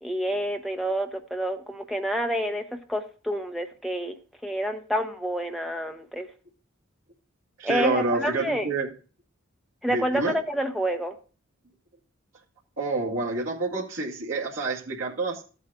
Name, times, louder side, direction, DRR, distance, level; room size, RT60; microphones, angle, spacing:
voice 1, 0.0-4.2 4.4-6.3 7.6-8.7 9.8-11.1, equal, ahead, 0.8 m, -28 dB
voice 2, 7.6-8.9 9.9-10.4 12.8-15.4, right 3 dB, 75° right, 2.2 m, -28 dB
14.5 x 8.1 x 2.4 m
head